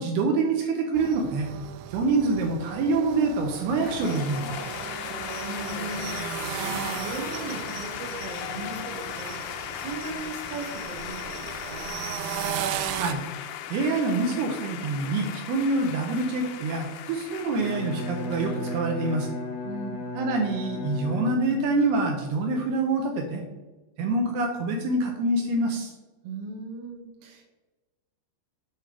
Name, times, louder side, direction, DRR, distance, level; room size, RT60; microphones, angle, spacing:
voice 1, 0.0-1.5 1.9-4.5 12.9-13.2 13.7-19.3 20.1-23.4 24.0-25.9, right 3 dB, 75° right, 2 dB, 2.6 m, -26 dB
sound 1, 1.0-13.1, right 11 dB, 90° right, 2.9 m, -36 dB
sound 2, 3.7-19.2, left 10 dB, 90° left, 3.0 m, -37 dB
voice 2, 5.4-9.4 9.7-11.9 19.6-20.1 26.2-27.4, right 3 dB, 60° right, 0 dB, 1.7 m, -38 dB
Bowed string instrument, 17.5-21.8, left 1 dB, 60° left, 1.1 m, -34 dB
7.8 x 5.5 x 5.0 m, 1.2 s
omnidirectional pair, 5.1 m